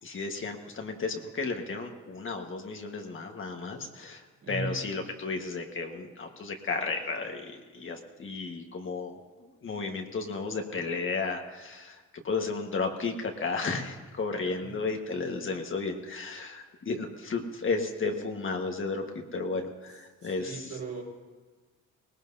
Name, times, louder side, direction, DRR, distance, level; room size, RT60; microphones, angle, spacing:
voice 1, 0.0-19.0 19.3-20.7, left 4 dB, 40° left, 3 dB, 1.6 m, -33 dB
voice 2, 4.4-4.9 14.5-14.7 20.2-21.0, right 4 dB, 60° right, -3 dB, 4.8 m, -37 dB
19.0 x 18.5 x 2.8 m, 1.3 s
cardioid pair, 90°, 30 cm